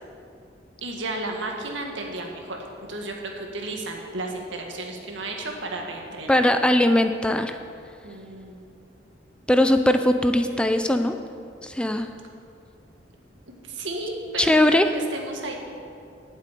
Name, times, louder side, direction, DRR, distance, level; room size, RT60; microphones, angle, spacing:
voice 1, 0.8-2.6 2.9-6.4 8.0-8.6 13.6-15.5, right 2 dB, 80° right, 1 dB, 1.9 m, -33 dB
voice 2, 6.3-7.6 9.5-11.2 11.6-12.1 14.4-14.9, left 1 dB, 5° left, 7 dB, 0.4 m, -20 dB
9.8 x 7.6 x 9.1 m, 2.5 s
head